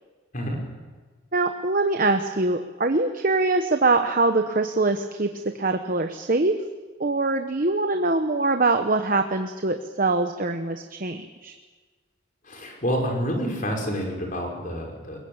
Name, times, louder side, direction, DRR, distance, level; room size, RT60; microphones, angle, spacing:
voice 1, 0.3-0.7 12.4-15.2, equal, 40° left, 1 dB, 5.6 m, -28 dB
voice 2, 1.3-5.3 5.6-6.6 7.0-11.5, right 3 dB, 45° right, 6 dB, 1.1 m, -23 dB
22.0 x 21.5 x 8.8 m, 1.4 s
head